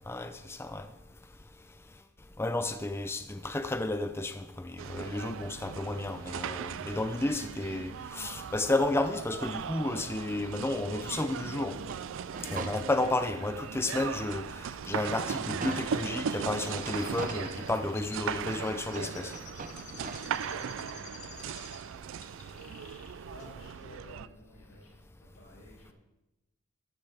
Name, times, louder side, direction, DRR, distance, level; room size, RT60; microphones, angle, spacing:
voice 1, 0.1-0.9 2.4-11.7 12.5-19.3, left 2 dB, 10° left, 9 dB, 0.5 m, -32 dB
sound 1, 4.8-24.3, right 7 dB, 60° right, 0.3 m, -38 dB
sound 2, 11.7-13.4 13.9-14.0 14.4-16.2 16.8-18.3 18.8-20.2, right 3 dB, 40° right, 0.7 m, -42 dB
Chirp tweet, 14.9-21.9 22.2-23.1 23.4-23.5, left 5 dB, 35° left, 1.7 m, -50 dB
voice 2, 20.2-21.5 22.4-22.7 23.3-25.9, left 1 dB, 80° left, -3 dB, 4.5 m, -53 dB
12.5 x 11.5 x 3.4 m, 0.93 s
head